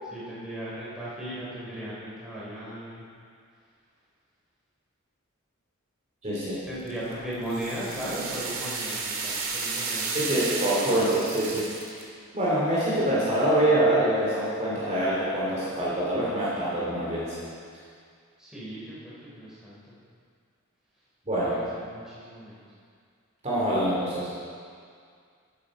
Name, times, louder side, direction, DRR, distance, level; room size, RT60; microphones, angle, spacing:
voice 1, 0.0-3.0 6.7-10.4 18.4-19.9 21.4-22.6, right 1 dB, 5° right, -9 dB, 3.5 m, -37 dB
voice 2, 6.2-6.6 10.1-11.7 12.3-17.4 21.3-21.6 23.4-24.3, right 1 dB, 30° right, -8 dB, 2.6 m, -25 dB
sound 1, 6.9-12.0, right 4 dB, 65° right, 1.9 m, -32 dB
14.0 x 8.9 x 4.9 m, 2.2 s
head